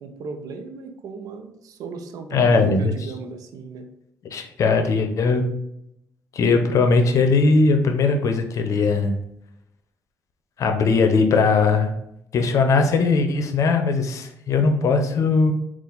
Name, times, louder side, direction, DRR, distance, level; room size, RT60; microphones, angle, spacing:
voice 1, 0.0-3.9, right 4 dB, 70° right, 6 dB, 0.6 m, -36 dB
voice 2, 2.3-3.0 4.2-5.4 6.3-9.1 10.6-11.9 12.3-15.5, left 4 dB, 55° left, 6 dB, 0.6 m, -19 dB
4.0 x 2.5 x 3.9 m, 0.81 s
supercardioid pair, 75°, 6 cm